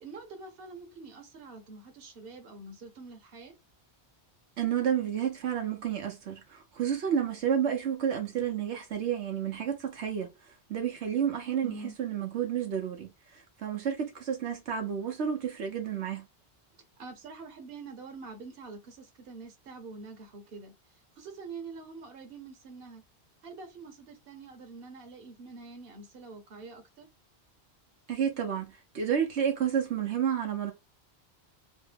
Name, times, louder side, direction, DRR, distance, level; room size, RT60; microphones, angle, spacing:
voice 1, 0.0-3.5 11.6-11.9 16.7-23.0 23.4-27.1, right 4 dB, 60° right, 1.1 m, -46 dB
voice 2, 4.6-10.3 10.7-16.2 28.1-30.7, right 8 dB, 85° right, 1.1 m, -30 dB
3.1 x 2.1 x 3.2 m
omnidirectional pair, 1.1 m